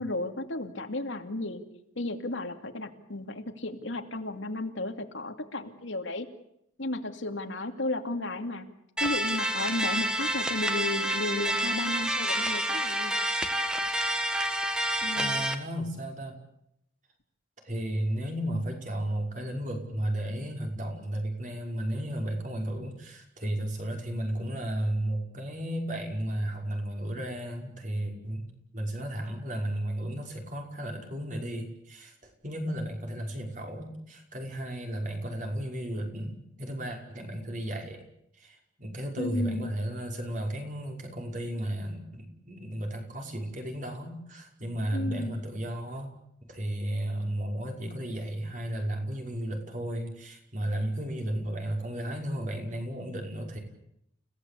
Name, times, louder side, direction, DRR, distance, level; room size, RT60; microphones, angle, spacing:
voice 1, 0.0-1.7 2.0-6.3 6.8-8.7 9.0-13.2 15.0-15.4 39.2-39.7 44.9-45.4, left 2 dB, 80° left, 5 dB, 2.7 m, -34 dB
sound 1, 9.0-15.5, right 1 dB, 5° right, 1.8 m, -28 dB
voice 2, 15.2-16.4 17.6-38.0 38.4-46.1 46.4-53.6, right 1 dB, 40° right, 2 dB, 5.6 m, -34 dB
30.0 x 17.5 x 8.6 m, 0.78 s
head